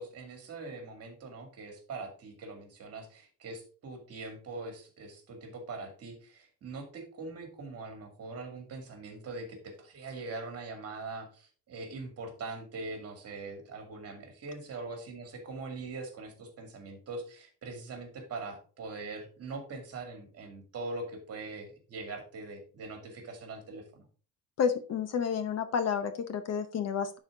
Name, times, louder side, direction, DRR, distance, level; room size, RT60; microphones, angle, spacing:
voice 1, 0.0-24.1, right 3 dB, 40° right, 5 dB, 2.3 m, -42 dB
voice 2, 24.6-27.2, left 7 dB, 45° left, 10 dB, 0.8 m, -30 dB
10.5 x 4.4 x 3.8 m, 0.40 s
cardioid pair, 160°, 37 cm